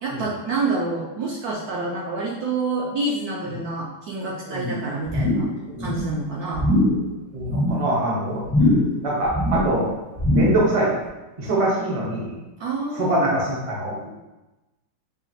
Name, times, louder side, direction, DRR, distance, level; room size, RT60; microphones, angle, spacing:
voice 1, 0.0-5.5 5.8-6.7 12.6-13.4, right 3 dB, 70° right, -3 dB, 0.9 m, -27 dB
sound 1, 5.1-5.6 5.8-6.2 6.5-7.0 7.4-7.9 8.4-9.0 9.3-9.8 10.2-10.7 11.1-11.2, left 1 dB, 15° left, 0.5 m, -21 dB
voice 2, 7.3-8.4 9.0-10.0 10.3-10.9 11.4-12.3 13.0-14.1, right 1 dB, 40° right, -4 dB, 0.5 m, -24 dB
4.8 x 2.5 x 3.0 m, 1.0 s
omnidirectional pair, 2.0 m